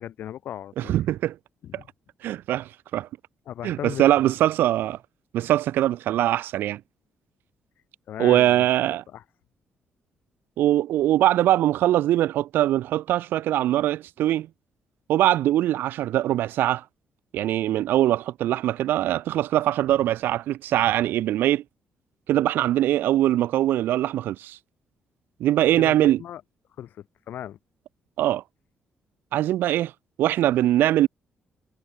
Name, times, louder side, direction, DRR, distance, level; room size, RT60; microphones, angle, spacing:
voice 1, 0.0-0.9 1.6-1.9 3.5-4.3 8.1-8.7 9.1-9.2 25.7-26.4 26.8-27.6, left 11 dB, 70° left, 2.8 m, -37 dB
voice 2, 0.8-1.4 1.7-1.8 2.2-3.1 3.6-5.0 5.3-6.8 8.2-9.0 10.6-14.5 15.1-16.8 17.3-21.6 22.3-24.6 25.4-26.2 28.2-28.4 29.3-29.9 30.2-31.1, right 13 dB, 85° right, 0.6 m, -22 dB
cardioid pair, 135°, 3 cm